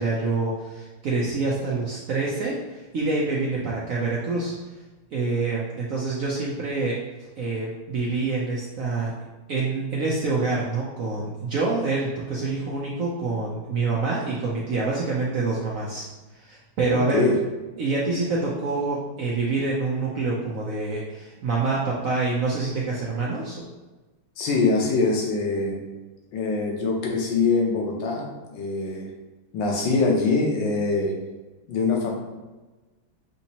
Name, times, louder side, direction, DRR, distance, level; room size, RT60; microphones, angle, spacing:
voice 1, 0.0-4.5 5.1-9.1 9.5-16.1 16.3-17.3 17.8-23.6, right 3 dB, 70° right, -4 dB, 0.8 m, -26 dB
voice 2, 16.9-17.4 24.4-25.8 26.3-29.1 29.5-31.1 31.7-32.1, left 3 dB, 70° left, 0 dB, 1.5 m, -23 dB
6.2 x 2.8 x 2.8 m, 1.2 s
omnidirectional pair, 2.2 m